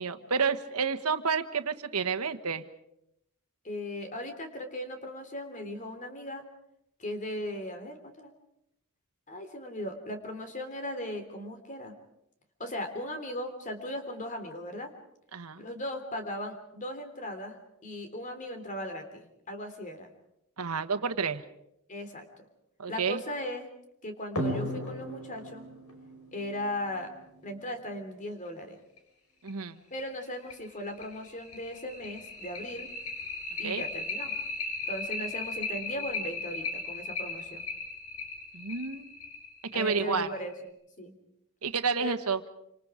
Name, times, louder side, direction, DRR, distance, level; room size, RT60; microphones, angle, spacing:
voice 1, 0.0-2.7 15.3-15.6 20.6-21.4 22.8-23.2 29.4-29.8 33.6-33.8 38.5-39.1 39.7-40.3 41.6-42.4, right 5 dB, 85° right, 9 dB, 1.3 m, -30 dB
voice 2, 3.6-6.4 7.0-8.3 9.3-11.9 12.6-14.9 15.6-20.1 21.9-22.3 22.9-23.7 24.0-25.6 26.3-27.1 27.4-28.8 29.9-32.9 33.6-34.3 34.9-37.6 39.7-40.7 41.0-41.1 42.0-42.2, left 1 dB, 35° left, 6 dB, 3.4 m, -38 dB
sound 1, 24.3-27.5 29.0-29.1 29.5-29.6 30.0-30.1 30.5-40.5, left 2 dB, 80° left, 6.0 m, -36 dB
27.5 x 26.5 x 5.1 m, 0.78 s
head